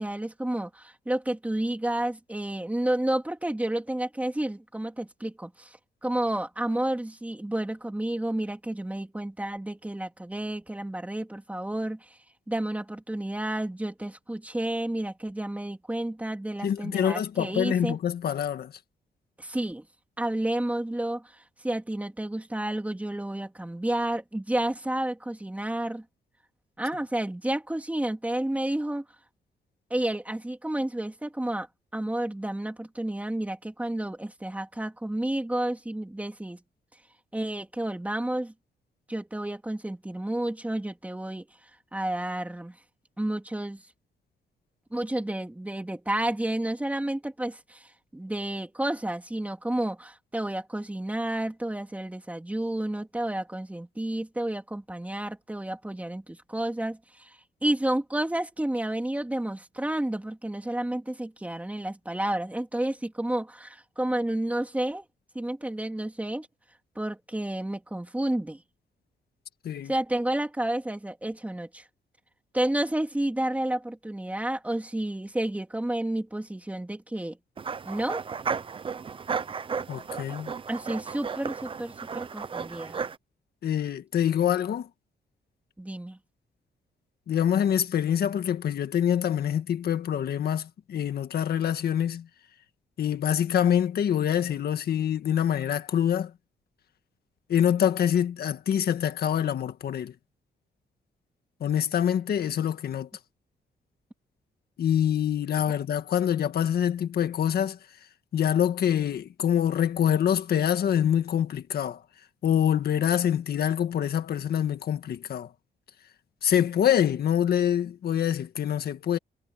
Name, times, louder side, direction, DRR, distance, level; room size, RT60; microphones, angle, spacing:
voice 1, 0.0-12.2 12.5-18.0 19.4-19.8 20.2-26.0 26.8-29.0 29.9-31.7 31.9-36.6 37.3-38.5 39.1-41.4 41.9-42.8 43.2-43.8 44.9-65.0 65.3-66.5 66.9-68.6 69.9-71.8 72.5-77.4 77.8-78.2 80.7-83.0 85.8-86.2, right 1 dB, 10° right, 3.0 m, -31 dB
voice 2, 16.6-18.7 69.6-69.9 79.9-80.5 83.6-84.9 87.3-92.3 93.0-96.3 97.5-100.1 101.6-103.1 104.8-107.8 108.3-112.0 112.4-115.5 116.4-119.2, left 9 dB, 65° left, 1.7 m, -25 dB
sound 1, 77.6-83.2, right 6 dB, 30° right, 0.7 m, -34 dB
cardioid pair, 130°, 17 cm